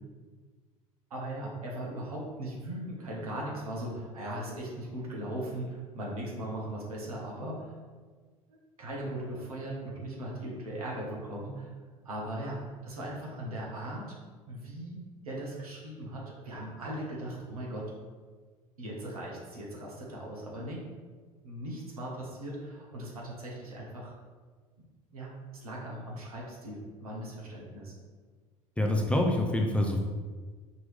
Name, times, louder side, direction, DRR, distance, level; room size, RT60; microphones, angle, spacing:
voice 1, 1.1-7.7 8.5-11.7 12.0-14.1 14.5-17.9 18.8-20.8 21.4-24.2 25.1-27.9, right 1 dB, 75° right, -3 dB, 1.2 m, -39 dB
voice 2, 28.8-30.0, left 1 dB, 5° left, 1 dB, 0.5 m, -26 dB
4.9 x 3.0 x 3.5 m, 1.5 s
figure-of-eight pair, 65°, 19 cm